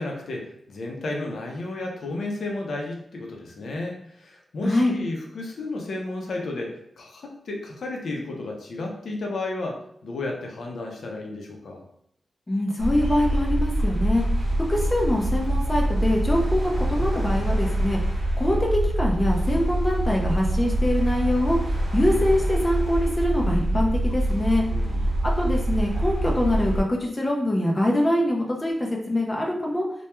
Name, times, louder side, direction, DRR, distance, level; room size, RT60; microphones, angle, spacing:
voice 1, 0.0-11.8 24.7-25.1, left 2 dB, 75° left, 0 dB, 0.5 m, -33 dB
voice 2, 4.6-4.9 12.5-14.2 14.7-18.0 18.4-21.6 21.9-24.6 25.4-29.8, left 1 dB, 20° left, -1 dB, 0.4 m, -24 dB
sound 1, 12.8-26.8, right 1 dB, 75° right, 0.7 m, -25 dB
2.2 x 2.1 x 2.9 m, 0.74 s
wide cardioid pair, 130°, 0 cm